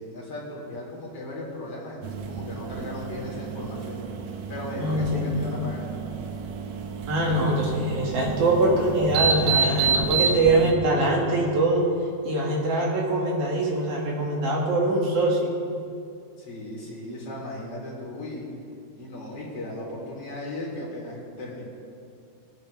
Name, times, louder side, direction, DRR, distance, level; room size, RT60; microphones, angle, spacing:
voice 1, 0.0-5.9 16.4-18.5 19.0-21.6, left 1 dB, 40° left, -5 dB, 3.9 m, -36 dB
sound 1, 2.0-10.7, right 6 dB, 85° right, 2.7 m, -29 dB
voice 2, 4.8-5.3 7.1-11.9 12.2-15.5, right 2 dB, 60° right, -3 dB, 3.1 m, -23 dB
22.0 x 9.4 x 3.3 m, 2.4 s
omnidirectional pair, 4.2 m